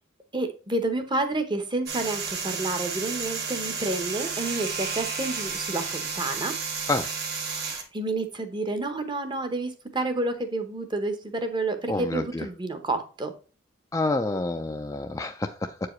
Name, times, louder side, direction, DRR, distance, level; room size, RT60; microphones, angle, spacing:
voice 1, 0.3-6.5 7.9-13.3, right 2 dB, 20° right, 8 dB, 0.8 m, -29 dB
sound 1, 1.9-7.8, right 5 dB, 50° right, 1.7 m, -32 dB
voice 2, 11.9-12.5 13.9-15.7, left 2 dB, 15° left, 6 dB, 0.3 m, -28 dB
7.5 x 4.7 x 3.0 m, 0.36 s
head